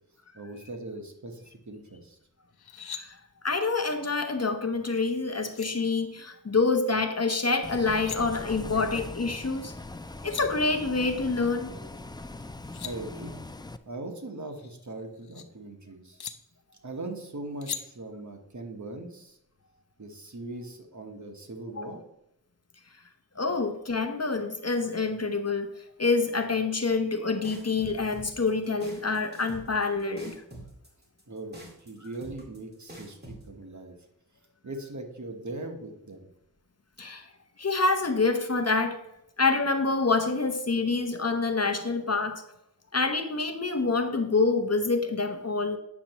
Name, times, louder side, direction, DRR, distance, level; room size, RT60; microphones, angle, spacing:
voice 1, 0.3-2.2 12.8-13.4 13.8-16.2 16.8-19.4 20.0-22.0 31.3-34.0 34.6-36.3, right 2 dB, 50° right, 3 dB, 1.2 m, -40 dB
sound 1, 2.5-3.0 5.1-5.2 5.5-5.7 7.8-8.2 9.9-10.0 10.1-10.5 12.4-12.9 14.4-15.4 16.2-16.3 17.6-17.8, left 7 dB, 80° left, 0.6 m, -39 dB
voice 2, 2.8-3.2 3.4-9.7 10.2-11.7 21.8-21.9 23.4-25.7 26.0-30.4 37.0-37.3 37.6-39.0 39.4-42.4 42.9-45.8, left 3 dB, 40° left, 6 dB, 0.8 m, -27 dB
Bus, 7.6-13.8, left 2 dB, 10° left, 0.3 m, -41 dB
sound 2, 27.4-33.4, right 1 dB, 25° right, 2.0 m, -45 dB
8.5 x 6.5 x 3.0 m, 0.82 s
wide cardioid pair, 65°, 38 cm